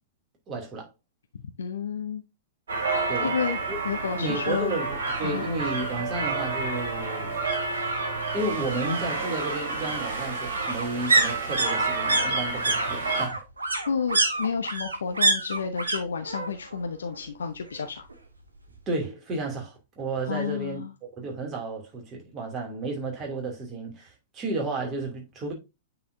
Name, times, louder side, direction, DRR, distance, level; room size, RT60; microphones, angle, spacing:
voice 1, 0.5-0.9 3.1-3.3 3.7-3.8 4.2-7.4 8.3-13.4 18.9-25.5, right 2 dB, 25° right, 2.7 m, -32 dB
voice 2, 1.6-2.2 3.2-3.6 3.8-4.8 5.2-5.5 13.9-18.1 20.3-20.9, left 6 dB, 65° left, 0.7 m, -30 dB
sound 1, 2.7-13.3, right 3 dB, 60° right, 2.5 m, -30 dB
sound 2, 5.1-5.2 5.6-5.7 5.9-6.9 8.2-16.8 17.1-18.1 18.4-18.5, right 2 dB, 75° right, 1.2 m, -28 dB
8.8 x 4.3 x 2.7 m
figure-of-eight pair, 105°, 0 cm